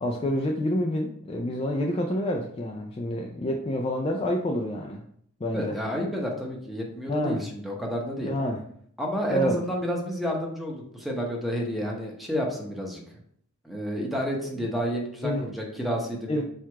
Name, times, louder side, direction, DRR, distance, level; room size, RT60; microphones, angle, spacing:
voice 1, 0.0-5.0 5.4-5.8 7.1-7.5 8.3-8.6 9.3-9.6 15.2-15.4 16.3-16.4, equal, 25° left, 1 dB, 0.3 m, -28 dB
voice 2, 5.5-8.3 9.0-13.0 13.6-16.4, equal, ahead, -1 dB, 0.8 m, -30 dB
4.5 x 2.4 x 4.5 m, 0.65 s
head